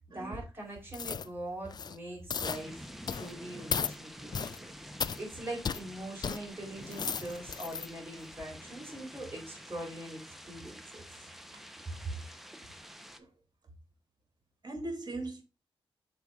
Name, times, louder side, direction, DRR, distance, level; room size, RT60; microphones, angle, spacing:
voice 1, 0.1-11.0 11.8-12.0, right 1 dB, 25° right, 4.0 m, -43 dB
sound 1, 0.9-1.3 1.7-2.0 2.3-2.6 3.1-3.3 3.7-3.9 4.3-4.6 5.0-5.2 5.6-5.8 6.2-6.4 6.8-7.9 8.3-8.4, left 6 dB, 45° left, 0.4 m, -35 dB
sound 2, 2.4-13.2, equal, ahead, 0.9 m, -48 dB
voice 2, 14.6-15.4, right 2 dB, 45° right, 2.3 m, -39 dB
6.7 x 4.6 x 3.5 m
cardioid pair, 80°, 10 cm